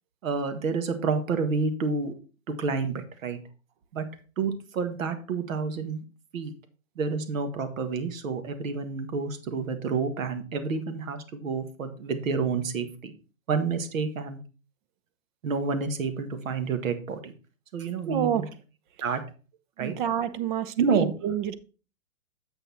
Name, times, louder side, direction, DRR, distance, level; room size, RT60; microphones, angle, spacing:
voice 1, 0.2-2.1 2.6-3.4 3.9-4.0 4.4-6.0 6.3-6.5 7.0-13.1 13.5-14.4 15.4-17.3 17.7-18.5 19.0-19.2 19.8-19.9 20.8-21.1, right 5 dB, 75° right, 1.6 m, -29 dB
voice 2, 18.1-18.5 19.8-21.6, right 9 dB, 40° right, 0.8 m, -28 dB
7.9 x 6.2 x 4.2 m
hypercardioid pair, 145°, 40 cm